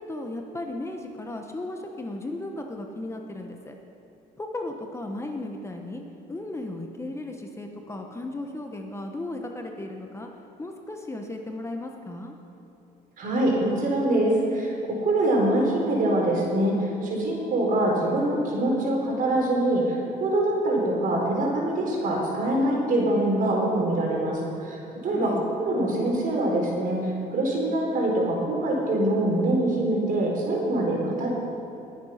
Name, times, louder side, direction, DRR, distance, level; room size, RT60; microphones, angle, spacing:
voice 1, 0.0-3.7 4.4-6.0 6.3-10.3 10.6-12.3 25.1-25.4, left 2 dB, 15° left, 3 dB, 1.1 m, -35 dB
voice 2, 13.2-25.3 25.6-31.3, right 1 dB, 55° right, -1 dB, 4.2 m, -24 dB
21.0 x 8.1 x 5.8 m, 2.8 s
cardioid pair, 110°, 17 cm